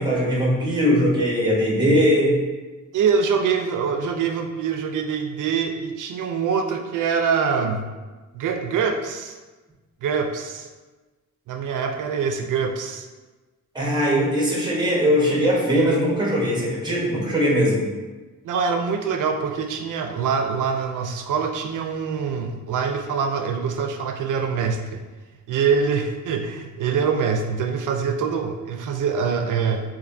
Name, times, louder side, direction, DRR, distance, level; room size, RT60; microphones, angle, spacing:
voice 1, 0.0-2.3 13.7-17.8, equal, 15° right, -4 dB, 0.9 m, -20 dB
voice 2, 2.9-7.9 8.3-9.4 10.0-10.7 11.5-13.1 18.4-25.0 25.5-29.8, right 6 dB, 80° right, 5 dB, 0.5 m, -24 dB
4.2 x 2.6 x 2.6 m, 1.2 s
wide cardioid pair, 135°, 31 cm